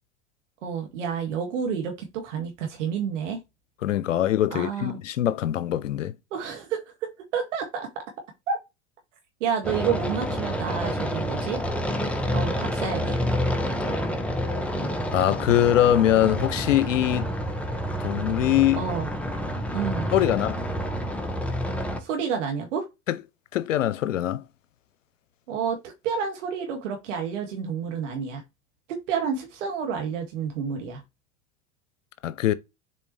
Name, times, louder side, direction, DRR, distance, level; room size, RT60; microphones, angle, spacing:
voice 1, 0.6-3.4 4.5-5.0 6.3-8.0 8.5-8.6 9.4-11.6 12.3-13.2 18.8-19.1 19.7-20.1 22.0-22.9 25.5-28.4 28.9-31.0, right 6 dB, 70° right, 2.1 m, -29 dB
voice 2, 3.8-6.1 15.1-17.3 18.0-18.9 20.1-20.6 23.1-23.2 23.5-24.4 32.2-32.5, left 12 dB, 85° left, 0.7 m, -22 dB
sound 1, 9.6-22.0, equal, 5° left, 1.4 m, -28 dB
7.2 x 4.4 x 3.2 m
hypercardioid pair, 85°, 37 cm